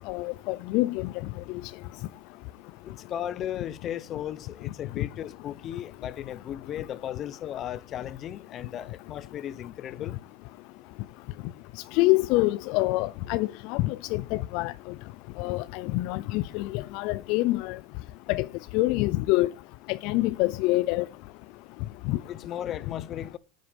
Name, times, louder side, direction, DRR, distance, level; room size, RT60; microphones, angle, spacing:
voice 1, 0.1-1.1 11.9-14.7 15.4-17.8 18.3-18.4 18.7-19.5 19.9-21.1 22.1-22.2, left 20 dB, 50° left, 0.5 m, -26 dB
voice 2, 2.8-10.2 22.2-23.4, left 10 dB, 30° left, 0.9 m, -36 dB
9.7 x 8.1 x 5.2 m
supercardioid pair, 150°, 0 cm